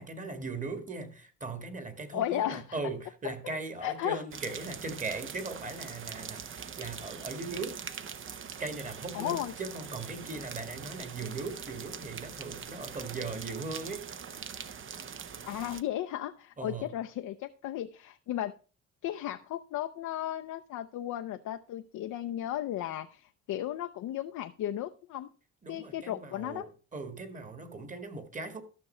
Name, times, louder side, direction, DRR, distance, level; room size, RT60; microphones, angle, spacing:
voice 1, 0.0-7.8 8.6-14.1 16.6-16.9 25.6-28.6, right 3 dB, 25° right, 1.6 m, -39 dB
voice 2, 2.1-2.8 3.8-4.2 9.1-9.5 15.5-18.5 19.0-25.3 25.7-26.6, left 12 dB, 75° left, 0.6 m, -35 dB
sound 1, 4.3-15.8, right 7 dB, 40° right, 0.7 m, -43 dB
13.0 x 6.0 x 4.3 m
cardioid pair, 90°, 30 cm